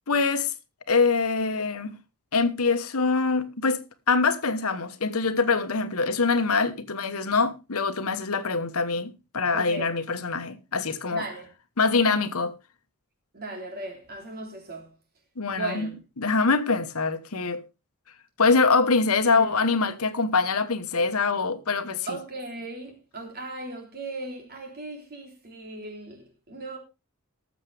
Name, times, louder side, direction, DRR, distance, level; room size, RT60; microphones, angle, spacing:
voice 1, 0.1-0.5 0.9-2.0 2.3-3.8 4.1-11.2 11.8-12.5 15.4-15.9 16.2-17.6 18.4-22.2, left 4 dB, 75° left, 1.2 m, -24 dB
voice 2, 9.5-9.9 11.1-11.5 13.3-14.9 15.5-16.0 19.2-19.6 22.1-26.8, right 2 dB, 45° right, 3.5 m, -37 dB
19.0 x 7.3 x 3.4 m
head